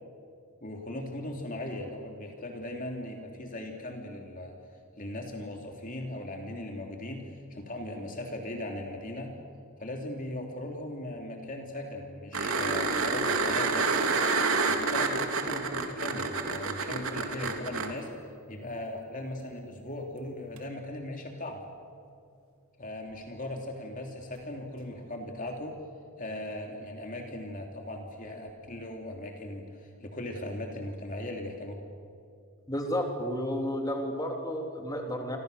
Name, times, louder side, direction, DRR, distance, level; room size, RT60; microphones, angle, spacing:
voice 1, 0.6-4.5 5.0-7.2 7.5-9.3 9.8-13.9 14.7-18.1 18.5-21.6 22.8-25.7 26.2-31.8, left 1 dB, 35° left, 2 dB, 3.0 m, -38 dB
sound 1, 12.3-17.9 20.6-20.7, right 4 dB, 65° right, 3.1 m, -28 dB
voice 2, 32.7-35.4, equal, 15° left, 2 dB, 3.3 m, -32 dB
29.5 x 26.5 x 6.8 m, 2.4 s
head